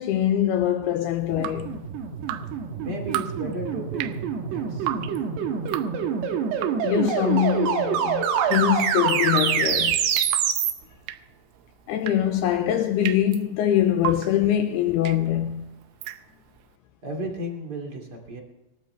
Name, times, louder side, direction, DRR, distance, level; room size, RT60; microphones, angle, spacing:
voice 1, 0.0-1.8 6.8-10.0 11.9-15.6, left 11 dB, 85° left, 2.3 m, -23 dB
Drip, 1.2-16.7, right 13 dB, 90° right, 3.3 m, -36 dB
sound 1, 1.3-10.7, right 7 dB, 65° right, 3.3 m, -26 dB
voice 2, 2.8-4.1 4.5-5.1 17.0-18.4, right 1 dB, 30° right, 2.2 m, -34 dB
22.5 x 13.0 x 3.4 m
omnidirectional pair, 5.4 m